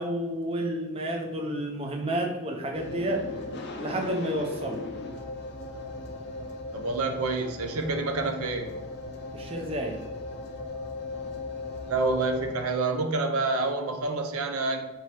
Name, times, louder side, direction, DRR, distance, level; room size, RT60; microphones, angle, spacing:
voice 1, 0.0-3.3 3.8-4.8 9.3-10.1, right 1 dB, 25° right, 2 dB, 0.4 m, -30 dB
sound 1, 2.7-12.5, left 2 dB, 50° left, 0.5 m, -38 dB
voice 2, 6.7-8.7 11.9-14.8, right 3 dB, 80° right, 6 dB, 0.5 m, -28 dB
4.5 x 2.7 x 3.3 m, 1.1 s
head